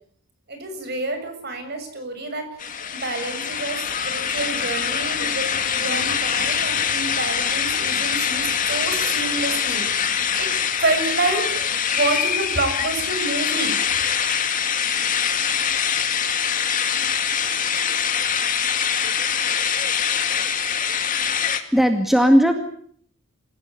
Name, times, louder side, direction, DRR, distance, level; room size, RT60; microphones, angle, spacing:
voice 1, 0.5-2.5 2.9-5.5 5.7-10.0 10.4-13.8 14.2-14.3, right 3 dB, 50° right, 7 dB, 6.9 m, -28 dB
sound 1, 2.6-21.6, left 7 dB, 40° left, 2.2 m, -23 dB
voice 2, 21.3-22.5, equal, ahead, 5 dB, 2.0 m, -18 dB
27.0 x 17.0 x 9.7 m, 0.63 s
head